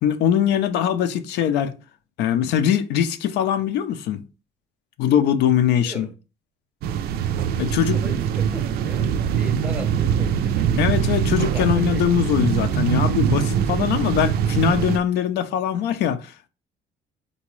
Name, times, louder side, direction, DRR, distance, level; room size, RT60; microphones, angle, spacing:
voice 1, 0.0-1.7 2.2-4.2 5.0-6.1 7.6-8.0 10.8-16.5, left 9 dB, 80° left, 0.5 m, -21 dB
voice 2, 5.5-6.2 7.9-10.8 11.5-12.1, right 1 dB, 10° right, 0.7 m, -38 dB
sound 1, 6.8-15.0, right 8 dB, 65° right, 0.4 m, -22 dB
3.9 x 2.2 x 3.0 m
cardioid pair, 110°, 17 cm